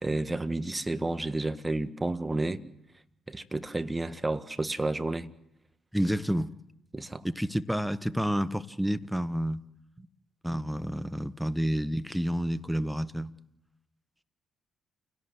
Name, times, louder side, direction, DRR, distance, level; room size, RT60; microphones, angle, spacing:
voice 1, 0.0-2.6 3.3-5.3 6.9-7.3 10.0-10.1, right 2 dB, 20° right, 1.6 m, -31 dB
voice 2, 5.9-6.5 7.2-9.6 10.4-13.3, equal, ahead, 1.2 m, -29 dB
29.0 x 17.5 x 8.0 m
hypercardioid pair, 45°, 0 cm